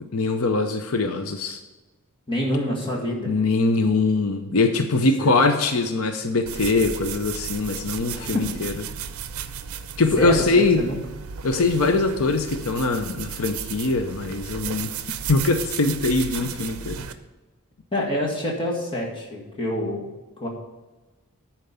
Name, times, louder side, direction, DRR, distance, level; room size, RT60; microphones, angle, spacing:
voice 1, 0.1-1.6 3.3-8.7 10.0-10.8 11.4-14.9 15.3-17.0, left 3 dB, 80° left, 7 dB, 0.7 m, -22 dB
voice 2, 2.3-3.3 5.0-5.3 8.1-8.5 10.0-11.0 17.9-20.1 20.4-20.5, left 1 dB, 25° left, -2 dB, 1.8 m, -27 dB
sound 1, 6.5-17.1, right 7 dB, 75° right, 0.6 m, -34 dB
10.5 x 4.5 x 7.0 m, 1.1 s
head